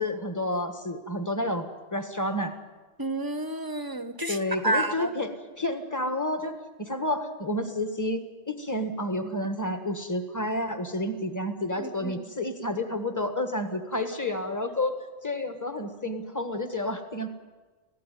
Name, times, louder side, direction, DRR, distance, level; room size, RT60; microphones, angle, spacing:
voice 1, 0.0-2.5 4.3-5.3 5.6-6.5 6.8-8.2 8.5-14.9 15.2-17.3, left 1 dB, 15° left, 7 dB, 1.5 m, -30 dB
voice 2, 3.0-5.1 11.8-12.3, right 1 dB, 20° right, 10 dB, 0.9 m, -30 dB
18.0 x 16.0 x 9.3 m, 1.3 s
omnidirectional pair, 1.2 m